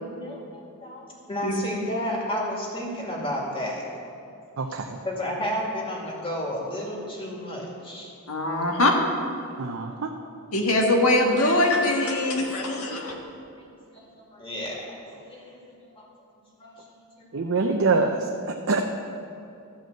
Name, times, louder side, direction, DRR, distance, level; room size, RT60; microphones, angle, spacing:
voice 1, 0.0-4.1 5.0-8.1 9.7-9.9 13.6-13.7 13.9-16.0 16.6-16.7 17.2-17.3, equal, 25° left, -3 dB, 2.2 m, -32 dB
voice 2, 4.6-5.0 9.6-10.1 17.3-18.2 18.7-18.8, right 4 dB, 60° right, 2 dB, 0.6 m, -24 dB
voice 3, 8.3-9.0 10.5-13.1, left 2 dB, 80° left, 1 dB, 1.6 m, -22 dB
13.0 x 5.3 x 7.7 m, 2.6 s
head